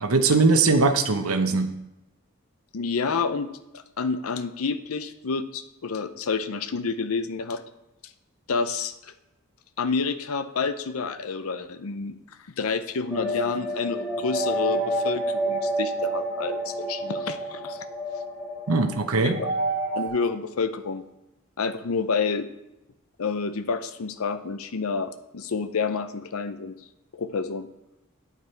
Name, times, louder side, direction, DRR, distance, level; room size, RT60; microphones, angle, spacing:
voice 1, 0.0-1.7 18.7-19.4, right 3 dB, 85° right, 8 dB, 0.9 m, -21 dB
voice 2, 2.7-3.5 4.0-7.6 8.5-9.1 9.8-12.2 12.6-17.8 19.2-19.5 19.9-21.0 21.6-22.5 23.2-26.8 27.1-27.7, left 4 dB, 80° left, 10 dB, 0.6 m, -29 dB
sound 1, 13.1-20.1, right 1 dB, 5° right, 2.7 m, -29 dB
9.2 x 8.2 x 4.5 m, 0.92 s
head